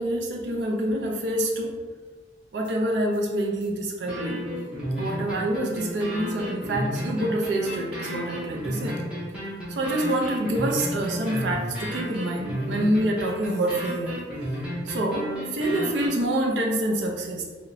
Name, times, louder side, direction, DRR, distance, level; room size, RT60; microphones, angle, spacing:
voice 1, 0.0-1.7 2.5-4.4 5.0-9.0 9.7-14.2 14.9-17.4, right 1 dB, 65° right, 1 dB, 0.4 m, -26 dB
sound 1, 2.6-2.7 3.1-3.2 3.6-3.7 4.1-16.1, equal, 5° right, 0.6 m, -32 dB
2.8 x 2.1 x 2.5 m, 1.4 s
head